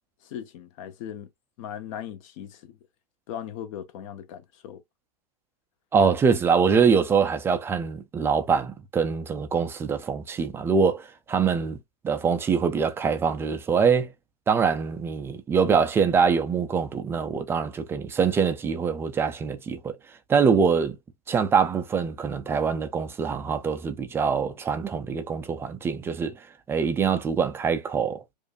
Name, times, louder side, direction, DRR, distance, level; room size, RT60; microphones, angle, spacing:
voice 1, 0.2-1.3 1.6-2.7 3.3-4.8, left 9 dB, 50° left, 0.9 m, -38 dB
voice 2, 5.9-11.8 12.0-14.1 14.5-20.0 20.3-21.0 21.3-28.2, right 6 dB, 10° right, 0.4 m, -24 dB
4.8 x 2.5 x 2.5 m
hypercardioid pair, 140°, 21 cm